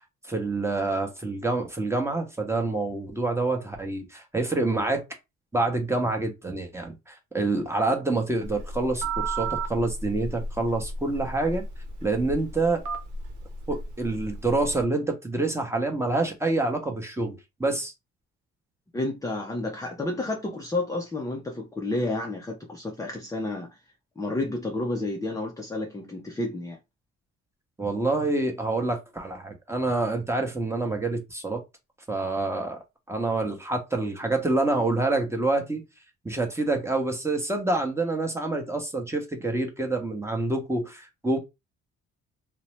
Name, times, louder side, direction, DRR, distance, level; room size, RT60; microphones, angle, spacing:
voice 1, 0.3-5.0 5.5-11.6 12.0-12.8 13.7-17.9 27.8-31.6 32.1-32.8 33.1-35.8 36.2-41.4, right 2 dB, 10° right, 0.8 m, -27 dB
Telephone, 8.4-14.8, right 3 dB, 80° right, 0.7 m, -34 dB
voice 2, 18.9-23.8 24.2-26.8, left 2 dB, 10° left, 0.5 m, -30 dB
2.6 x 2.0 x 3.1 m
cardioid pair, 90°, 30 cm